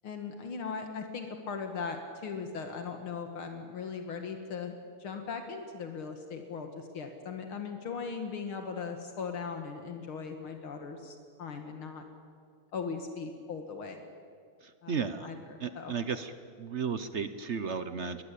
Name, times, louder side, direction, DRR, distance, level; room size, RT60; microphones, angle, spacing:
voice 1, 0.0-4.7 5.0-12.0 12.7-14.0 14.8-14.9 15.2-15.9, left 5 dB, 75° left, 5 dB, 2.5 m, -39 dB
voice 2, 14.9-15.3 15.6-16.3 16.6-18.2, right 6 dB, 50° right, 11 dB, 0.8 m, -34 dB
22.0 x 20.5 x 8.5 m, 2.2 s
omnidirectional pair, 2.3 m